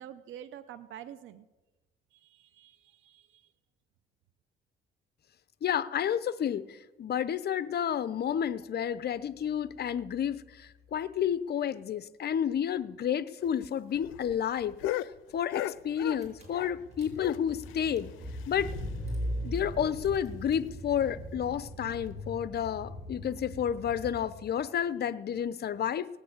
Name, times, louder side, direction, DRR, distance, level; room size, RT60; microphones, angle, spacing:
voice 1, 0.0-1.5 2.1-3.5, right 10 dB, 80° right, 11 dB, 0.7 m, -47 dB
voice 2, 5.6-14.7 15.3-18.1 18.5-18.7 19.4-26.1, left 9 dB, 55° left, 15 dB, 0.7 m, -31 dB
sound 1, 13.4-16.8 17.1-19.1 19.4-19.5 19.8-19.9 20.3-20.4 21.0-21.3 22.1-22.2, left 14 dB, 90° left, 0.5 m, -38 dB
Car / Engine, 16.2-24.6, equal, 35° right, 6.4 m, -40 dB
18.0 x 8.3 x 8.8 m, 1.2 s
cardioid pair, 90°, 20 cm